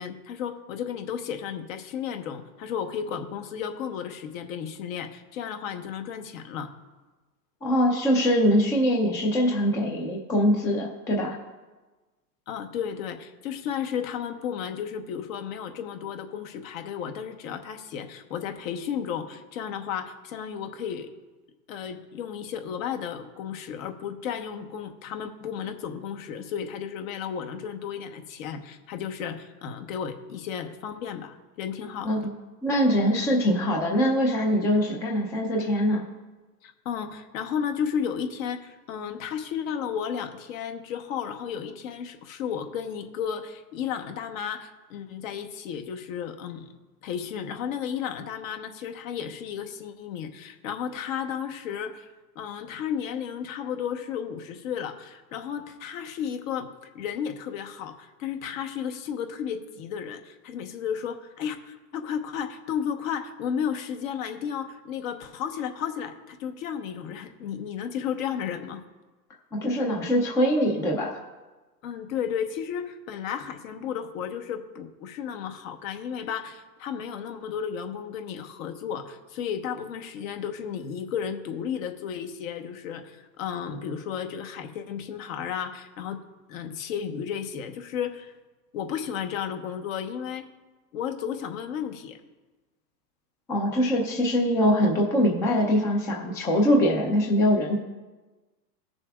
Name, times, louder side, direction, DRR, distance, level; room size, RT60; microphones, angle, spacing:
voice 1, 0.0-6.7 12.5-21.1 21.7-32.1 36.6-46.7 47.0-56.7 56.9-68.8 71.8-86.2 86.5-88.3 88.7-90.4 90.9-92.2, left 8 dB, 55° left, 6 dB, 1.1 m, -33 dB
voice 2, 7.6-11.3 32.0-32.3 32.6-36.0 69.5-71.1 93.5-97.8, equal, 5° left, -1 dB, 0.4 m, -23 dB
17.5 x 6.9 x 2.4 m, 1.2 s
hypercardioid pair, 135°, 49 cm